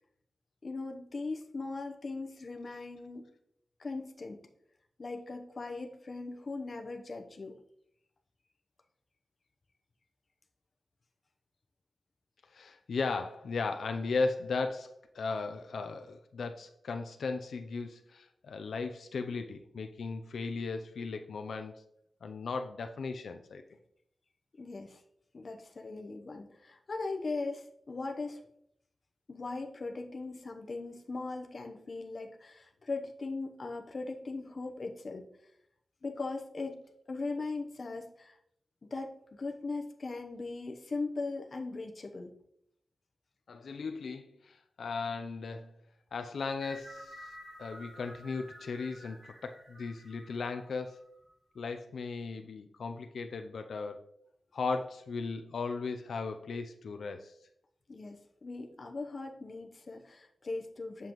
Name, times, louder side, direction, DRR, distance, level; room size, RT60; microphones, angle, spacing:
voice 1, 0.6-3.2 3.8-4.4 5.0-7.5 24.6-25.0 25.3-28.4 29.3-35.2 36.0-36.8 37.1-38.4 38.8-42.3 57.9-61.1, left 3 dB, 40° left, 3 dB, 0.8 m, -39 dB
voice 2, 12.5-21.7 22.2-23.6 43.5-45.7 46.1-47.3 47.6-51.0 51.6-54.0 54.5-57.3, left 4 dB, 85° left, 6 dB, 0.5 m, -36 dB
sound 1, 46.6-51.3, equal, 20° right, 1.5 m, -51 dB
7.6 x 6.8 x 3.0 m, 0.73 s
wide cardioid pair, 170°, 0 cm